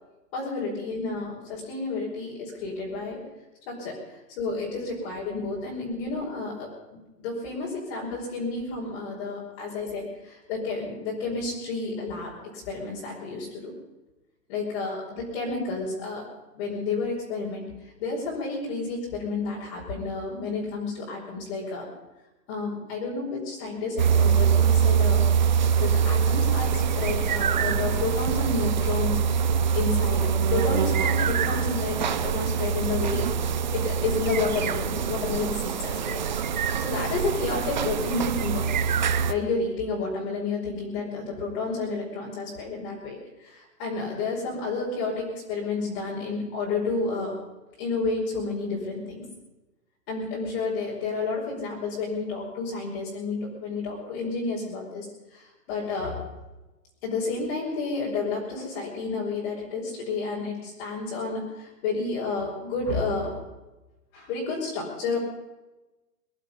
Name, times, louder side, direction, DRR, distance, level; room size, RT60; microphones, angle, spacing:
voice 1, 0.3-3.2 3.7-13.7 14.5-16.2 16.5-17.7 18.0-21.9 22.5-25.2 25.8-29.2 29.7-36.2 36.8-38.7 39.3-47.3 47.8-49.3 50.1-55.1 55.3-56.2 57.0-63.3 64.1-65.2, left 3 dB, 35° left, -4 dB, 5.1 m, -31 dB
sound 1, 24.0-39.3, right 7 dB, 30° right, 0.5 m, -24 dB
23.0 x 11.0 x 5.6 m, 1.1 s
hypercardioid pair, 150°, 49 cm